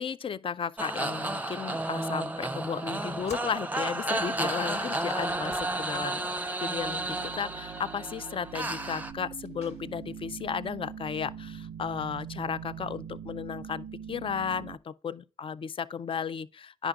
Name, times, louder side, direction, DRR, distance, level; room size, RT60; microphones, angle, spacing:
voice 1, 0.0-16.9, left 7 dB, 45° left, 0.4 m, -34 dB
sound 1, 0.8-9.1, right 2 dB, 15° right, 0.5 m, -32 dB
sound 2, 3.3-3.5 4.1-7.8 9.4-9.8 10.1-10.2 11.1-11.2, left 2 dB, 65° left, 1.2 m, -47 dB
sound 3, 6.8-14.8, right 8 dB, 65° right, 0.4 m, -43 dB
9.8 x 5.0 x 2.3 m
supercardioid pair, 50°, 12 cm